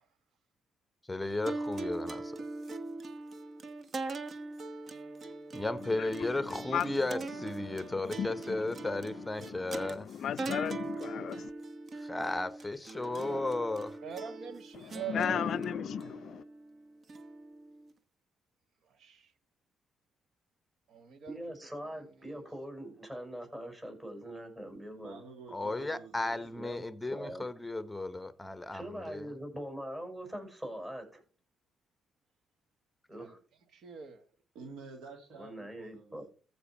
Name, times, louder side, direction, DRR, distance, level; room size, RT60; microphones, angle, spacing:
voice 1, 1.1-2.3 5.5-10.1 11.9-14.0 25.5-29.3, left 2 dB, 10° left, 0.9 m, -35 dB
sound 1, 1.5-17.9, right 2 dB, 45° right, 1.1 m, -41 dB
voice 2, 5.8-7.1 7.6-11.5 14.7-16.4, left 8 dB, 65° left, 0.5 m, -37 dB
voice 3, 13.0-13.5 14.0-15.5 18.9-19.3 20.9-21.3 21.9-22.0 33.2-33.4 33.7-34.2, right 8 dB, 70° right, 1.5 m, -43 dB
voice 4, 21.3-25.2 26.5-26.8 27.1-27.4 28.7-31.2 33.1-33.4 35.3-36.3, equal, 15° right, 5.2 m, -42 dB
voice 5, 24.8-26.4 34.5-36.3, right 4 dB, 85° right, 2.1 m, -49 dB
14.5 x 5.3 x 4.2 m
cardioid pair, 90°, 0 cm